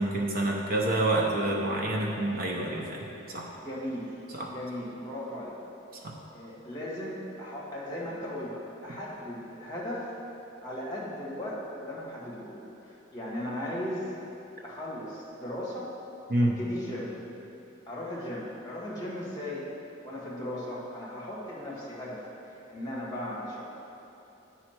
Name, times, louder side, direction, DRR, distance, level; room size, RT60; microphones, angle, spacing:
voice 1, 0.0-3.5 4.3-4.5 6.0-6.1 16.3-16.6, right 1 dB, 45° right, -1 dB, 0.7 m, -28 dB
voice 2, 3.5-4.1 4.5-5.6 6.3-8.5 8.8-10.1 10.6-14.1 14.6-15.9 16.4-17.1 17.9-19.7 20.0-23.6, left 1 dB, 20° left, -5 dB, 1.6 m, -37 dB
9.6 x 5.7 x 4.4 m, 2.9 s
head